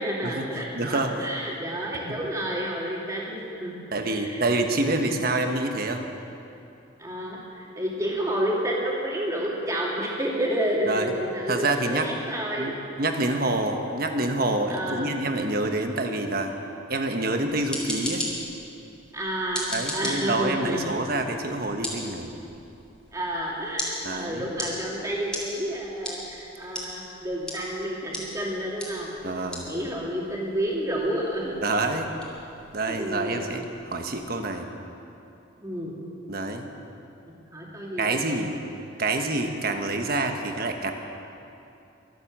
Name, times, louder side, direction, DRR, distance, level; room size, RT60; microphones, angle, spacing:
voice 1, 0.0-4.4 4.7-5.1 7.0-12.7 13.3-13.4 14.7-15.2 19.1-19.7 19.9-20.9 23.1-29.1 29.7-31.6 32.9-33.4 35.6-35.9 37.5-38.4, equal, 15° right, -4 dB, 2.7 m, -30 dB
voice 2, 0.7-1.1 2.1-2.2 3.9-6.1 10.9-11.1 11.5-12.1 12.6-12.7 13.0-16.5 16.9-18.3 19.7-22.3 24.0-24.5 29.2-29.7 31.6-32.1 32.7-34.7 36.3-36.7 38.0-38.6 39.0-40.9, right 2 dB, 50° right, 5 dB, 1.2 m, -27 dB
sound 1, 17.4-34.2, left 1 dB, 5° left, 2.7 m, -38 dB
23.0 x 7.8 x 7.4 m, 2.9 s
head